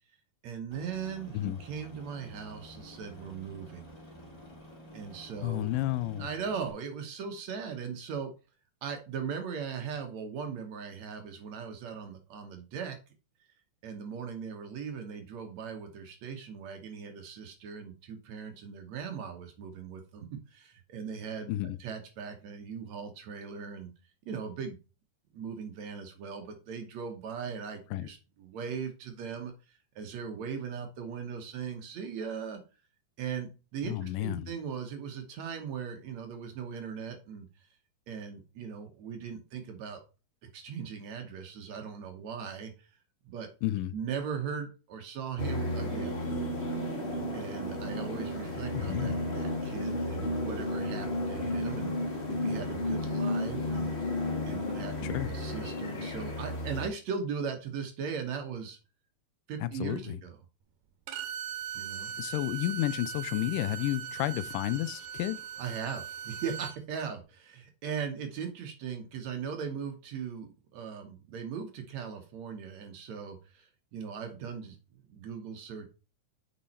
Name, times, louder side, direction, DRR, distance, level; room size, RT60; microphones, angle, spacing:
voice 1, 0.4-3.9 4.9-5.6 6.2-8.3 8.8-13.0 13.8-21.5 21.8-23.9 24.2-24.8 25.3-32.6 33.2-37.5 38.1-40.0 40.5-42.9 43.2-43.5 43.9-46.2 47.3-53.9 54.5-58.8 59.5-60.4 61.7-62.2 65.6-75.9, right 6 dB, 65° right, 2.1 m, -39 dB
Aircraft, 0.7-6.7, equal, 10° left, 1.6 m, -50 dB
voice 2, 5.4-6.3 21.5-21.8 27.9-28.1 33.8-34.5 43.6-43.9 48.7-49.3 55.0-55.3 59.6-60.2 62.2-65.4, left 15 dB, 90° left, 2.2 m, -31 dB
sound 1, 45.4-56.9, left 1 dB, 55° left, 0.7 m, -33 dB
Bowed string instrument, 61.1-66.8, right 8 dB, 80° right, 2.4 m, -39 dB
6.8 x 5.4 x 4.2 m
omnidirectional pair, 3.7 m